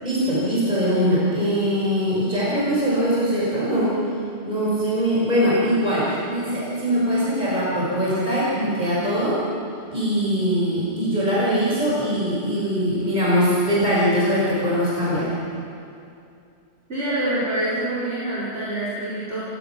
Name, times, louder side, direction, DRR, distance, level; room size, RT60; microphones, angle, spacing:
voice 1, 0.0-4.0 4.4-9.4 9.9-15.3, equal, 35° right, -7 dB, 5.8 m, -22 dB
voice 2, 16.9-19.4, right 1 dB, 75° right, -10 dB, 5.3 m, -26 dB
28.0 x 17.5 x 6.0 m, 2.6 s
omnidirectional pair, 1.2 m